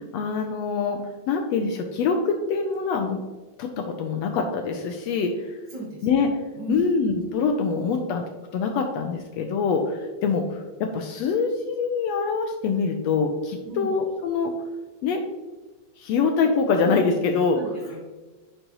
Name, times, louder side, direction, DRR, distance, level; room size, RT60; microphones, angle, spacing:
voice 1, 0.1-1.0 1.3-3.2 3.6-5.5 6.0-6.3 6.7-8.2 8.5-14.5 15.0-15.2 16.0-17.6, left 5 dB, 75° left, 5 dB, 1.6 m, -24 dB
voice 2, 5.7-6.1 6.5-6.8 13.6-13.9 17.4-18.0, right 3 dB, 45° right, -5 dB, 1.7 m, -36 dB
9.9 x 5.4 x 2.9 m, 1.2 s
omnidirectional pair, 3.3 m